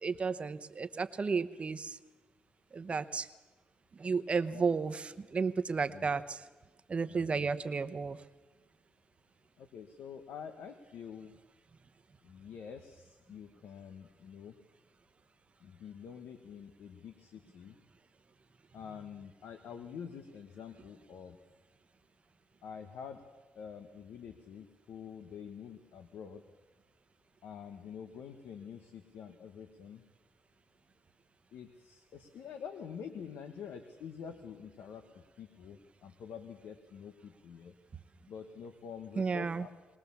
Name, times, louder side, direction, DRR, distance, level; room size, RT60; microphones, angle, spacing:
voice 1, 0.0-2.0 2.7-3.3 4.0-6.4 6.9-8.2 39.2-39.7, right 5 dB, 35° right, 11 dB, 0.9 m, -33 dB
voice 2, 7.1-7.5 9.6-11.3 12.2-14.6 15.6-17.8 18.7-21.4 22.6-23.2 23.5-26.4 27.4-30.0 31.5-37.8 38.3-39.7, left 7 dB, 80° left, 7 dB, 1.3 m, -47 dB
21.5 x 19.0 x 7.1 m, 1.2 s
cardioid pair, 85°, 3 cm